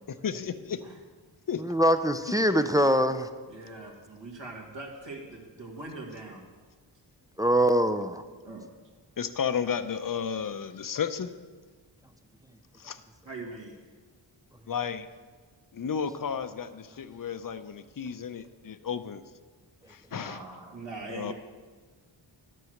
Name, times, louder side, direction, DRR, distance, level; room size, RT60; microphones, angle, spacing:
voice 1, 0.1-0.8 1.5-1.6 9.2-11.3 12.8-13.0 14.7-15.1 15.7-19.2 19.9-20.4 21.1-21.3, left 7 dB, 45° left, 11 dB, 0.6 m, -33 dB
voice 2, 1.6-3.3 7.4-8.2, equal, 10° right, 9 dB, 0.4 m, -23 dB
voice 3, 3.5-6.5 8.4-8.6 13.3-13.8 20.1-21.3, right 3 dB, 65° right, -1 dB, 2.1 m, -42 dB
11.0 x 4.7 x 6.5 m, 1.5 s
cardioid pair, 50°, 47 cm